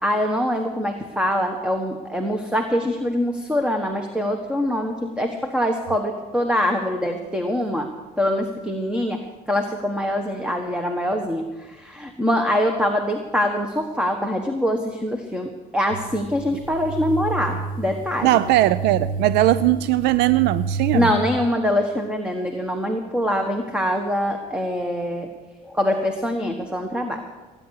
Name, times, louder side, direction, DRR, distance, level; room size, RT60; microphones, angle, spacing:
voice 1, 0.0-7.9 8.2-9.2 9.5-18.4 20.9-25.3 25.7-27.2, equal, 5° right, 4 dB, 1.4 m, -24 dB
sound 1, 15.9-21.1, right 4 dB, 55° right, 1.8 m, -30 dB
voice 2, 18.2-21.1, right 15 dB, 85° right, 15 dB, 0.5 m, -19 dB
19.5 x 9.8 x 6.5 m, 1.3 s
cardioid pair, 110°, 17 cm